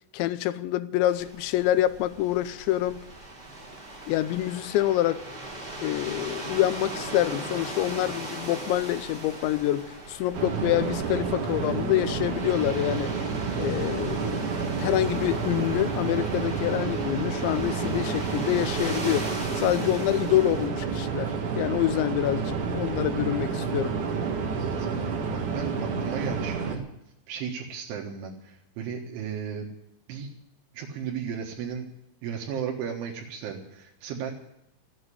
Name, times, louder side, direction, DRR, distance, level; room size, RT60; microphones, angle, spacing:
voice 1, 0.1-3.1 4.1-5.2 5.8-13.1 13.6-14.5 14.8-19.3 19.6-23.9, left 14 dB, 80° left, 2.9 m, -26 dB
sound 1, 1.1-20.7, right 2 dB, 15° right, 2.2 m, -39 dB
sound 2, 10.3-26.7, right 5 dB, 55° right, 2.6 m, -30 dB
voice 2, 24.5-26.8 27.3-29.7 30.1-30.3 30.7-31.9 32.2-34.3, right 7 dB, 80° right, 3.9 m, -35 dB
14.5 x 8.8 x 9.8 m
omnidirectional pair, 5.5 m